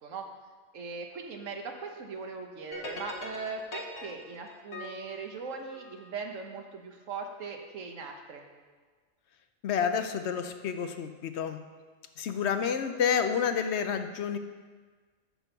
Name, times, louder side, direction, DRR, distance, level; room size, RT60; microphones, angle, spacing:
voice 1, 0.7-8.4, right 4 dB, 80° right, 3 dB, 1.3 m, -39 dB
sound 1, 2.7-6.1, left 2 dB, 45° left, 1.3 m, -43 dB
voice 2, 9.6-11.6 12.2-14.4, left 7 dB, 65° left, 9 dB, 0.8 m, -29 dB
6.8 x 6.8 x 6.0 m, 1.5 s
omnidirectional pair, 1.3 m